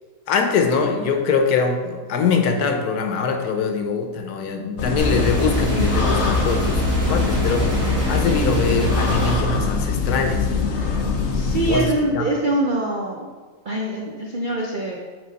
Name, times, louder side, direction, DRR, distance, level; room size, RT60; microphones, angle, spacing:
voice 1, 0.3-10.5 11.7-12.2, left 5 dB, 85° left, 4 dB, 1.3 m, -23 dB
sound 1, 4.8-11.8, left 4 dB, 55° left, 0.9 m, -23 dB
sound 2, 5.0-9.4, equal, 70° right, 2.2 m, -24 dB
voice 2, 11.3-13.3 13.7-15.0, right 1 dB, 50° right, -1 dB, 0.6 m, -23 dB
7.7 x 4.6 x 4.1 m, 1.4 s
omnidirectional pair, 1.6 m